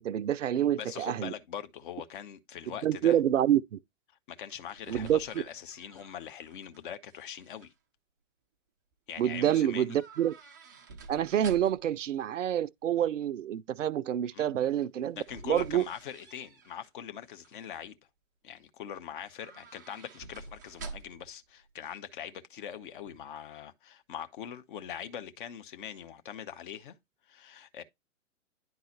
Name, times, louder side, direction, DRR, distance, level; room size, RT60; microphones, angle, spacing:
voice 1, 0.0-1.3 2.8-3.8 4.9-5.2 9.2-10.3 11.1-15.8, right 10 dB, 75° right, 0.5 m, -27 dB
voice 2, 0.8-3.2 4.3-7.7 9.1-10.0 14.3-14.5 15.2-18.0 18.4-26.9 27.3-27.8, left 9 dB, 40° left, 0.8 m, -42 dB
sound 1, 4.4-6.8 7.1-7.7 9.9-12.0 14.8-16.9 17.3-17.8 19.3-21.4 21.6-21.7, right 3 dB, 15° right, 0.3 m, -48 dB
10.5 x 3.9 x 2.8 m
figure-of-eight pair, 110°, 38 cm